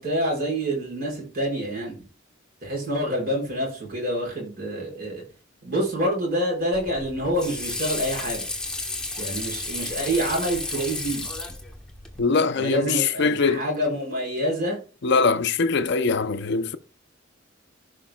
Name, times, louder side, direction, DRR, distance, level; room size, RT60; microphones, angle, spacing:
voice 1, 0.0-1.9 2.6-5.2 5.6-8.5 9.2-11.2 12.6-14.8, equal, 50° right, 4.9 m, -27 dB
Water / Sink (filling or washing), 6.7-12.2, left 2 dB, 5° left, 1.2 m, -32 dB
voice 2, 12.2-13.6 15.0-16.8, left 4 dB, 60° left, 0.6 m, -22 dB
15.5 x 5.2 x 2.3 m
head